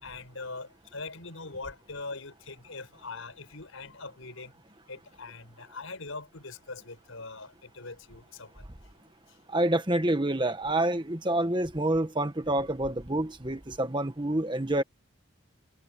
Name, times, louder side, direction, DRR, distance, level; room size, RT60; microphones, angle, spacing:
voice 1, 0.0-4.5 4.9-8.5, left 3 dB, 85° left, 5.2 m, -42 dB
voice 2, 9.5-14.8, right 1 dB, 25° right, 1.5 m, -27 dB
head